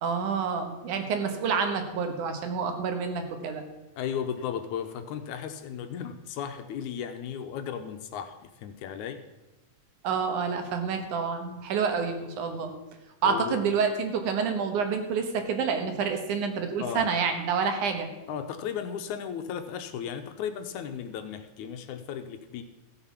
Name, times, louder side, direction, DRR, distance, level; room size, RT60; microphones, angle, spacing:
voice 1, 0.0-3.6 10.0-12.7 13.2-18.1, right 5 dB, 75° right, 6 dB, 2.7 m, -28 dB
voice 2, 4.0-9.2 13.2-13.6 16.8-17.1 18.3-22.6, left 8 dB, 75° left, 7 dB, 2.1 m, -35 dB
14.5 x 7.8 x 5.8 m, 1.0 s
omnidirectional pair, 3.6 m